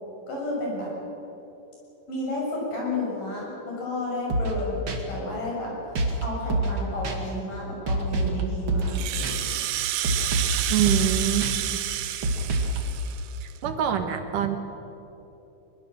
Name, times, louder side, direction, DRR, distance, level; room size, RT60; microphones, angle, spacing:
voice 1, 0.3-0.9 2.1-5.7 6.2-9.5, left 1 dB, 70° left, -3 dB, 8.3 m, -31 dB
sound 1, 4.3-4.6 4.9-5.0 6.0-6.2 6.5-6.8 7.0-7.2 7.9-8.4 8.7-9.0 9.2-9.3 10.0-10.6 10.9-11.1 11.4-11.5 12.2-12.8, right 2 dB, 40° right, 2.4 m, -26 dB
Rattle (instrument), 8.8-13.6, right 13 dB, 85° right, 2.7 m, -30 dB
voice 2, 10.7-11.5 13.6-14.6, right 10 dB, 70° right, 7 dB, 2.8 m, -24 dB
22.5 x 21.5 x 7.4 m, 3.0 s
omnidirectional pair, 4.0 m